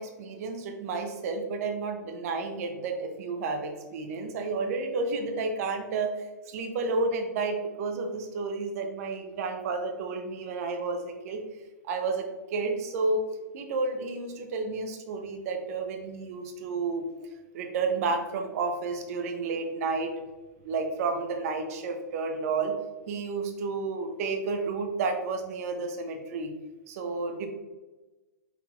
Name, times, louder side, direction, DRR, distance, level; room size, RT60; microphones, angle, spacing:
voice 1, 0.0-6.1 6.5-11.4 11.8-17.3 17.5-20.1 20.6-22.7 23.1-26.5 26.9-27.5, right 3 dB, 55° right, 4 dB, 0.8 m, -31 dB
6.0 x 2.7 x 2.4 m, 1.2 s
hypercardioid pair, 115°, 10 cm